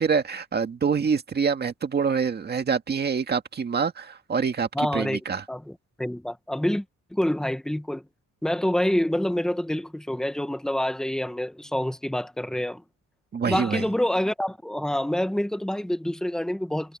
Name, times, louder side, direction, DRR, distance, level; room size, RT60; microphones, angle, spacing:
voice 1, 0.0-5.4 13.3-13.8, right 6 dB, 30° right, 1.9 m, -26 dB
voice 2, 4.7-5.2 5.5-6.8 7.1-8.1 8.4-12.8 13.5-17.0, left 1 dB, ahead, 1.2 m, -27 dB
wide cardioid pair, 175°, 31 cm